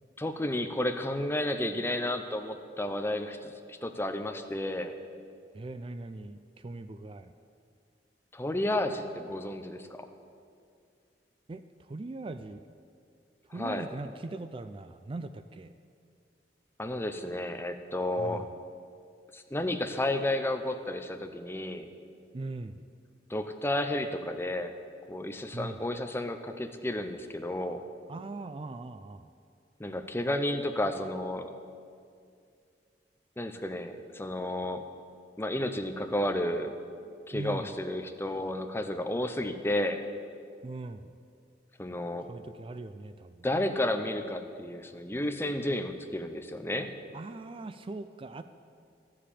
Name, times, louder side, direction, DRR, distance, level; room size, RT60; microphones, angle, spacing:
voice 1, 0.2-4.9 8.3-10.1 13.6-13.9 16.8-18.5 19.3-21.9 23.3-24.7 25.1-27.8 29.8-31.5 33.4-34.8 35.4-36.7 37.3-40.0 41.8-42.3 43.4-46.9, left 1 dB, 15° left, 7 dB, 0.7 m, -32 dB
voice 2, 5.5-7.3 11.5-12.6 13.5-15.7 18.2-18.5 22.3-22.8 25.5-25.8 28.1-29.3 37.3-37.7 40.6-41.1 42.3-43.5 47.1-48.4, right 2 dB, 30° right, 11 dB, 0.4 m, -40 dB
13.0 x 7.6 x 8.5 m, 2.3 s
head